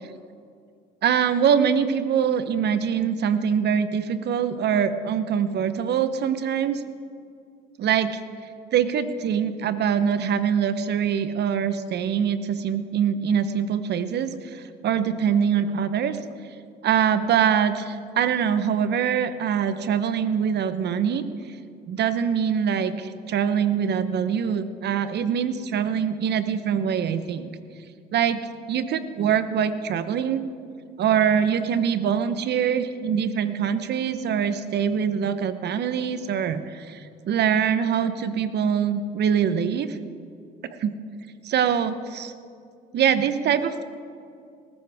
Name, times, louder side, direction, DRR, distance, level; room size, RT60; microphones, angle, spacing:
voice 1, 1.0-6.8 7.8-8.2 8.7-16.2 16.8-21.2 21.9-27.5 28.1-28.4 28.7-30.4 31.0-40.0 40.8-40.9 41.4-42.3 42.9-43.8, right 8 dB, 60° right, 12 dB, 1.0 m, -24 dB
20.0 x 13.5 x 3.6 m, 2.4 s
supercardioid pair, 75°, 20 cm